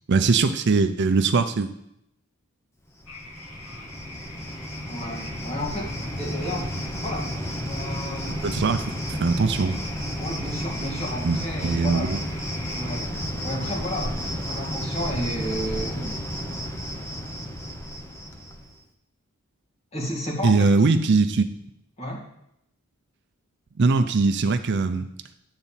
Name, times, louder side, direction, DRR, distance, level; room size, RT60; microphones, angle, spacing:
voice 1, 0.1-1.7 8.4-9.8 11.2-12.2 20.4-21.5 23.8-25.1, right 4 dB, 50° right, 9 dB, 0.5 m, -21 dB
Cricket, 3.0-18.7, equal, 10° left, 0.8 m, -32 dB
sound 1, 3.1-13.0, left 2 dB, 85° left, 1.9 m, -44 dB
voice 2, 4.9-6.7 6.9-7.3 7.6-8.5 10.2-12.1 12.7-16.2 19.9-20.7 22.0-22.3, equal, 30° left, -3 dB, 2.1 m, -32 dB
10.5 x 4.0 x 7.3 m, 0.78 s
head